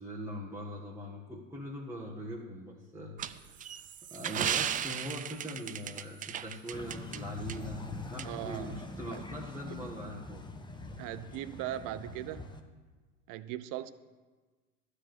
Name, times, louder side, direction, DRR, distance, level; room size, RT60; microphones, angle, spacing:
voice 1, 0.0-3.8 4.1-10.4, equal, 5° right, -4 dB, 1.6 m, -42 dB
sound 1, 3.2-7.2 7.5-7.6 8.2-8.3, right 9 dB, 20° right, 0.4 m, -35 dB
sound 2, 6.7-12.6, left 2 dB, 10° left, 1.0 m, -44 dB
voice 2, 8.3-8.8 9.1-9.2 9.7-9.8 11.0-12.5 13.3-13.9, right 13 dB, 50° right, 15 dB, 0.7 m, -39 dB
12.5 x 5.0 x 7.9 m, 1.3 s
hypercardioid pair, 80°, 38 cm